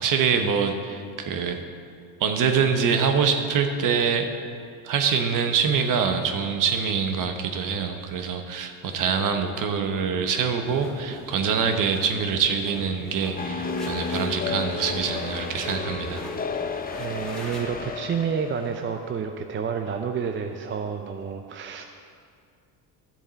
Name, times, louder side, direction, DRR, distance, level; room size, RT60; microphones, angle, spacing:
voice 1, 0.0-1.6 2.2-4.3 4.8-16.2, right 6 dB, 50° right, 6 dB, 1.1 m, -25 dB
sound 1, 10.6-17.9, left 1 dB, ahead, 2.0 m, -41 dB
sound 2, 13.4-18.7, left 5 dB, 20° left, 0.7 m, -32 dB
voice 2, 17.0-21.9, right 6 dB, 30° right, 5 dB, 0.5 m, -29 dB
13.0 x 7.1 x 4.0 m, 2.3 s
cardioid pair, 105°, 40 cm